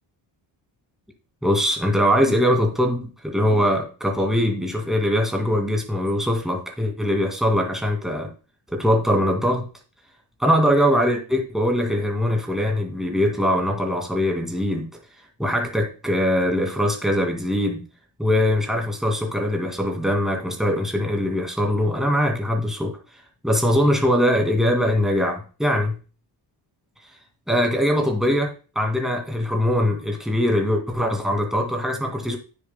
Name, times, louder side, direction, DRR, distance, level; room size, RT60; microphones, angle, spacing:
voice 1, 1.4-8.3 8.7-9.7 10.4-14.8 15.4-17.8 18.2-23.0 23.4-26.0 27.5-32.4, equal, ahead, 2 dB, 2.2 m, -22 dB
9.7 x 7.3 x 2.2 m, 0.36 s
cardioid pair, 100°, 45 cm